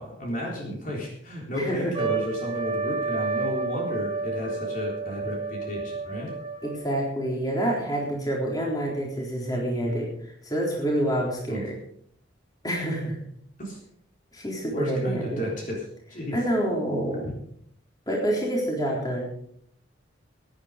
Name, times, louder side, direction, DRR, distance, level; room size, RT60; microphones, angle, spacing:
voice 1, 0.0-6.3 11.5-11.7 13.6-13.8 14.7-15.9 16.1-16.4 17.2-17.3, left 1 dB, 45° left, -2 dB, 3.8 m, -32 dB
voice 2, 1.5-1.9 6.6-10.1 10.4-11.8 12.6-13.2 14.3-15.5 16.3-17.3 18.1-19.2, right 1 dB, 20° left, -2 dB, 4.0 m, -27 dB
Trumpet, 1.9-6.9, right 4 dB, 25° right, 1.8 m, -31 dB
18.0 x 10.0 x 5.1 m, 0.67 s
head